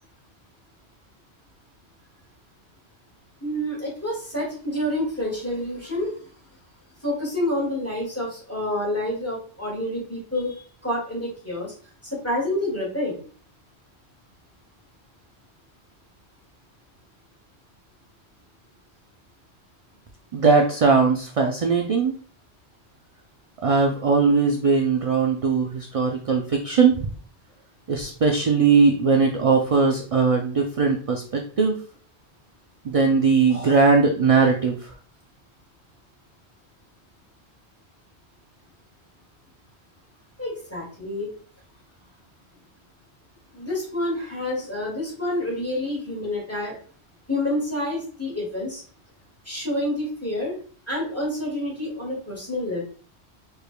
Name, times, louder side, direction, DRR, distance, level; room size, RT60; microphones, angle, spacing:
voice 1, 3.4-6.1 7.0-10.6 10.8-11.7 12.0-13.2 40.4-41.3 43.5-46.8 47.3-48.8 49.5-50.6 50.9-52.8, left 1 dB, 15° left, -3 dB, 1.9 m, -28 dB
voice 2, 20.3-22.1 23.6-27.1 27.9-31.8 32.9-34.8, right 4 dB, 45° right, 3 dB, 0.4 m, -20 dB
4.9 x 4.7 x 2.2 m, 0.43 s
omnidirectional pair, 1.1 m